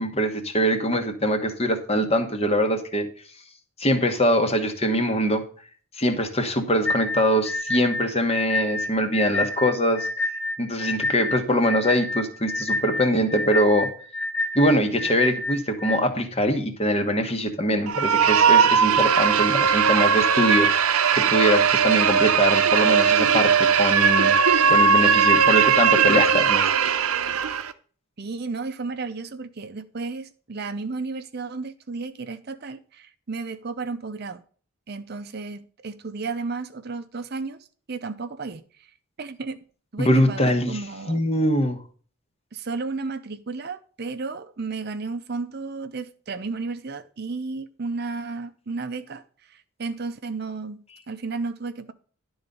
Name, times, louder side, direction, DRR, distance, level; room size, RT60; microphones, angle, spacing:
voice 1, 0.0-3.1 3.8-5.4 6.0-10.1 10.6-13.9 14.5-24.4 24.7-26.7 40.0-40.8 41.1-41.8, equal, 30° left, 1.2 m, -23 dB
sound 1, 6.9-16.0, left 2 dB, 10° left, 0.8 m, -28 dB
sound 2, 17.9-27.7, right 7 dB, 80° right, 0.7 m, -19 dB
voice 2, 28.2-34.4 34.9-37.6 37.9-38.9 39.2-39.6 39.9-41.2 42.5-50.8 51.1-51.9, right 4 dB, 45° right, 0.6 m, -33 dB
11.5 x 4.0 x 6.8 m
head